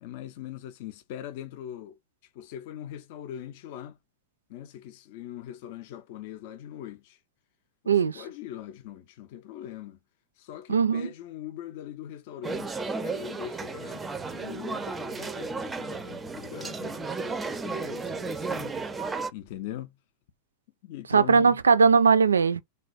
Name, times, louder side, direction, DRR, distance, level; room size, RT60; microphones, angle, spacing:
voice 1, 0.0-2.0 2.3-4.0 4.5-7.2 7.8-10.0 10.4-18.8 19.3-20.0 20.8-21.6, left 11 dB, 50° left, 0.5 m, -41 dB
voice 2, 7.9-8.2 10.7-11.1 21.1-22.6, right 5 dB, 75° right, 0.3 m, -20 dB
sound 1, 12.4-19.3, right 4 dB, 15° right, 0.5 m, -34 dB
3.2 x 2.3 x 2.4 m
figure-of-eight pair, 90°, 0 cm